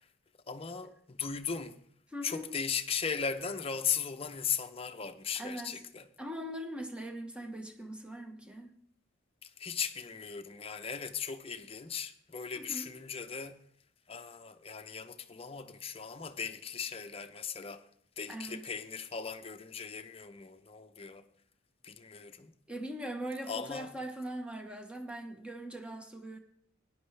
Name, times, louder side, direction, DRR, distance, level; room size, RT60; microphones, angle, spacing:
voice 1, 0.5-1.8 2.2-6.0 9.6-13.6 14.1-17.8 18.2-21.2 21.8-22.5 23.5-23.9, left 6 dB, 30° left, 0.7 m, -37 dB
voice 2, 2.1-2.5 5.3-5.9 6.2-8.7 12.5-12.9 18.3-18.6 22.7-26.4, right 1 dB, 5° right, 1.2 m, -41 dB
17.0 x 10.5 x 3.3 m
head